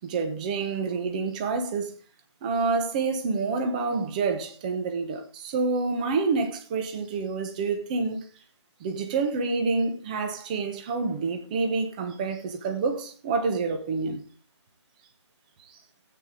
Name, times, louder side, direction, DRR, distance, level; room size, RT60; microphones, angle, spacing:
voice 1, 0.0-1.9 2.4-8.3 8.8-14.2 15.6-15.8, right 4 dB, 15° right, 1.2 m, -28 dB
15.5 x 9.0 x 3.9 m
figure-of-eight pair, 165°, 15 cm